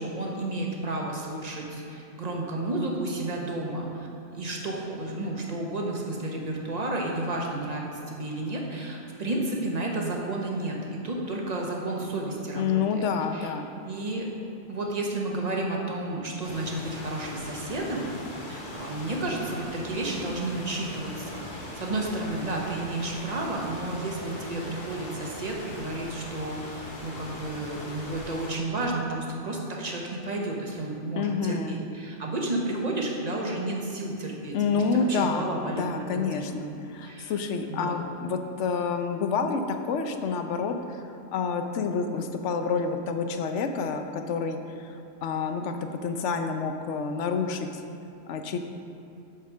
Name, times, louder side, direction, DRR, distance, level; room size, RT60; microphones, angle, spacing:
voice 1, 0.0-13.0 13.3-13.5 13.8-14.3 14.7-18.1 18.5-21.5 21.7-36.5 37.0-37.3 37.7-38.0, right 2 dB, 35° right, -1 dB, 1.1 m, -32 dB
voice 2, 12.5-13.7 31.2-31.8 34.5-41.0 41.3-44.9 45.2-47.8 48.3-48.7, left 5 dB, 85° left, 6 dB, 1.0 m, -28 dB
sound 1, 16.4-28.5, left 1 dB, 45° left, 1.4 m, -40 dB
8.1 x 4.7 x 6.1 m, 2.9 s
omnidirectional pair, 1.2 m